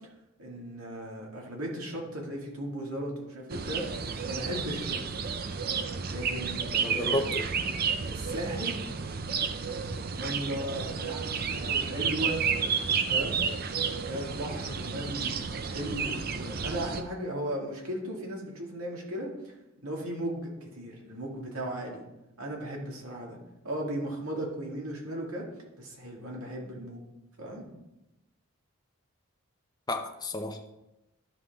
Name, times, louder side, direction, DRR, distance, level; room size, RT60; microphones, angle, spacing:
voice 1, 0.4-3.9 4.3-5.1 6.1-7.2 8.1-9.2 10.2-12.4 13.1-13.4 13.9-19.5 19.8-22.1 22.4-25.5 25.8-27.0 27.4-27.7, right 1 dB, 90° right, -1 dB, 2.1 m, -36 dB
sound 1, 3.5-17.0, right 6 dB, 45° right, 0.5 m, -31 dB
voice 2, 6.8-7.5 29.9-30.7, left 2 dB, 20° left, 4 dB, 0.6 m, -32 dB
11.5 x 5.7 x 3.5 m, 0.94 s
head